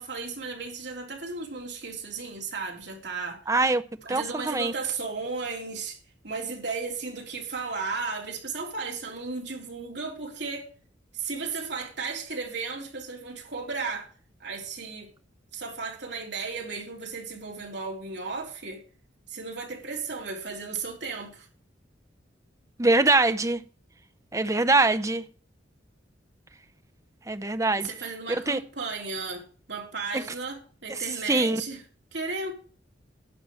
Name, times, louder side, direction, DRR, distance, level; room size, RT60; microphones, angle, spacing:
voice 1, 0.0-3.5 4.0-6.0 6.2-10.7 11.1-14.1 14.4-15.1 15.5-18.8 19.3-21.5 27.8-31.8 32.1-32.5, right 4 dB, 60° right, 3.6 m, -34 dB
voice 2, 3.5-3.8 4.1-4.7 22.8-23.6 24.3-25.2 27.3-27.9 28.5-28.6 30.9-31.0 31.3-31.6, right 2 dB, 15° right, 0.6 m, -23 dB
11.5 x 5.6 x 8.9 m
head